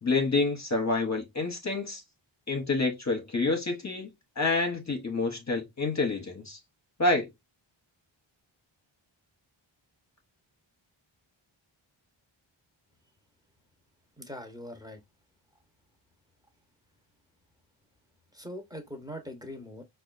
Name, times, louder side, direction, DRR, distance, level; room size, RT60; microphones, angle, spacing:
voice 1, 0.0-2.0 2.5-4.1 4.4-6.6 7.0-7.3, left 3 dB, 35° left, 0.7 m, -28 dB
voice 2, 14.2-15.0 18.3-19.8, equal, 10° right, 0.9 m, -41 dB
4.8 x 2.3 x 2.4 m
wide cardioid pair, 90°, 49 cm